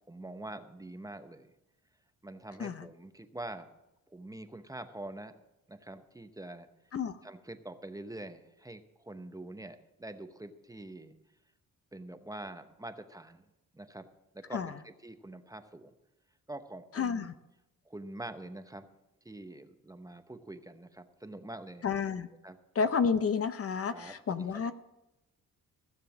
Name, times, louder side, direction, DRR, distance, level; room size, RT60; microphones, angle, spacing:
voice 1, 0.1-1.5 2.2-3.7 4.1-5.4 5.7-6.7 7.2-11.1 11.9-13.4 13.7-14.1 14.3-15.9 16.5-17.3 17.8-18.9 19.2-21.9 22.4-22.6 23.9-24.7, right 1 dB, 10° right, 8 dB, 0.8 m, -45 dB
voice 2, 17.0-17.3 21.8-22.3 22.8-24.7, left 6 dB, 45° left, 11 dB, 0.7 m, -30 dB
16.0 x 6.9 x 7.1 m, 0.95 s
cardioid pair, 105°, 34 cm